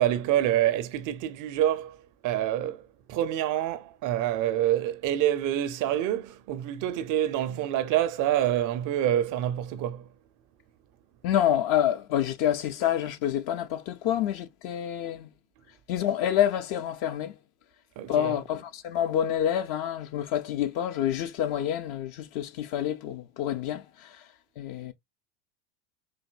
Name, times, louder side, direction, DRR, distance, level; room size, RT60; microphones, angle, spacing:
voice 1, 0.0-10.1 18.0-18.4, right 12 dB, 40° right, 0.5 m, -27 dB
voice 2, 11.2-15.3 15.9-17.3 18.1-24.2 24.6-24.9, left 10 dB, 50° left, 0.6 m, -27 dB
4.0 x 2.6 x 2.2 m
hypercardioid pair, 85°, 50 cm